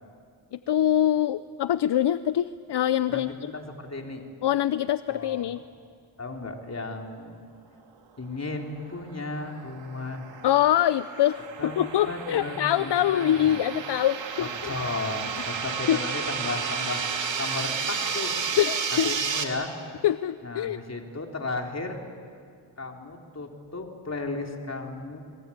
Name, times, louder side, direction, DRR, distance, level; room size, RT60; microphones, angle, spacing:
voice 1, 0.5-3.5 4.4-5.6 10.4-11.4 11.8-14.8 15.4-15.5 15.9-16.0 18.6-19.1 20.0-20.8, left 11 dB, 65° left, 14 dB, 0.7 m, -24 dB
voice 2, 3.1-4.2 5.1-5.5 6.2-7.4 8.2-10.3 11.6-13.6 14.4-17.0 17.4-18.4 19.0-19.7 20.4-22.0 22.8-25.2, left 3 dB, 35° left, 1 dB, 3.9 m, -35 dB
sound 1, 9.0-19.4, right 6 dB, 80° right, 2.7 m, -32 dB
29.5 x 22.5 x 8.8 m, 2.2 s
cardioid pair, 80°, 44 cm